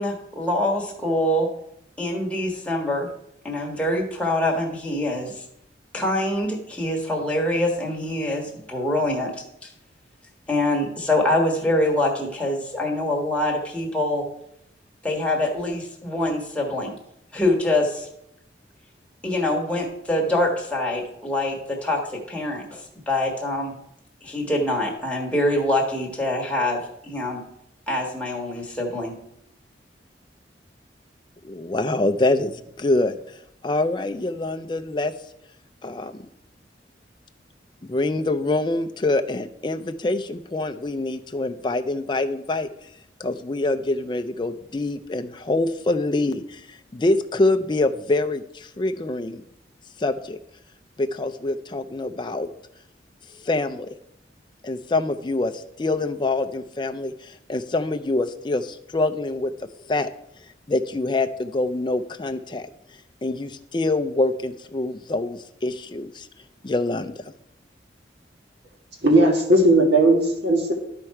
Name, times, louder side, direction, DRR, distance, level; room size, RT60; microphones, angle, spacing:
voice 1, 0.0-1.5 2.0-3.1 3.4-5.4 5.9-9.3 9.6-9.7 10.5-14.2 15.0-16.9 17.3-18.1 19.2-23.7 24.2-27.4 27.9-29.1, left 1 dB, 5° left, -2 dB, 1.4 m, -24 dB
voice 2, 31.4-33.2 33.6-35.1 35.8-36.2 37.8-42.7 43.2-49.4 50.0-50.4 51.0-52.5 53.4-53.9 54.6-59.5 59.9-60.1 60.7-62.7 63.2-66.3 66.6-67.1, left 2 dB, 25° left, 8 dB, 0.4 m, -25 dB
voice 3, 69.0-70.7, right 1 dB, 65° right, 1 dB, 1.9 m, -17 dB
12.5 x 4.4 x 4.7 m, 0.77 s
head